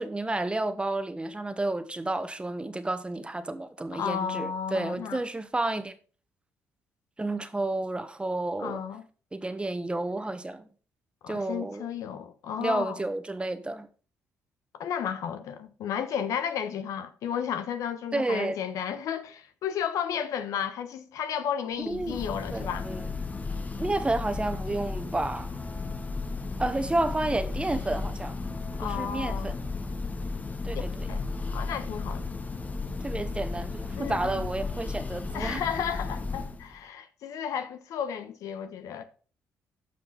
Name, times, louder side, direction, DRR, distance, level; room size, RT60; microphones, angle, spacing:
voice 1, 0.0-5.9 7.2-8.8 9.3-10.7 11.3-11.9 12.6-13.9 18.1-18.6 21.8-22.2 22.5-23.1 23.8-25.6 26.6-28.4 28.8-29.6 30.6-31.1 33.0-35.6, right 2 dB, 20° right, 1.2 m, -31 dB
voice 2, 3.9-5.2 8.6-9.0 11.2-13.0 14.8-22.9 28.8-29.5 30.7-31.2 31.5-32.2 34.0-34.5 35.3-39.0, left 8 dB, 75° left, 1.0 m, -33 dB
Church bell, 21.8-36.8, left 3 dB, 25° left, 1.2 m, -34 dB
14.0 x 5.2 x 4.1 m
supercardioid pair, 60°, 6 cm